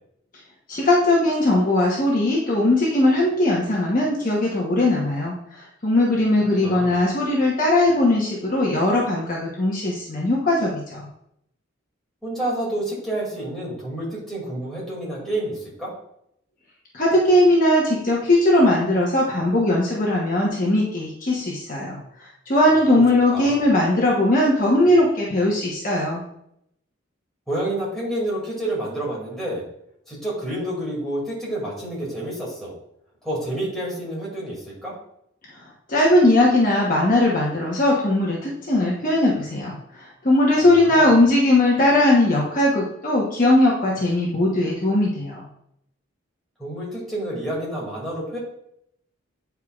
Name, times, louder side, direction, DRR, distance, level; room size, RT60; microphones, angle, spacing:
voice 1, 0.7-11.0 16.9-22.0 22.5-26.2 35.9-45.4, left 1 dB, 40° left, -4 dB, 1.1 m, -19 dB
voice 2, 6.6-6.9 12.2-15.9 22.9-23.0 23.3-23.6 27.5-29.6 30.1-32.7 33.2-34.9 40.6-41.2 46.6-48.4, right 1 dB, ahead, -7 dB, 2.5 m, -29 dB
9.1 x 4.6 x 2.5 m, 0.74 s
head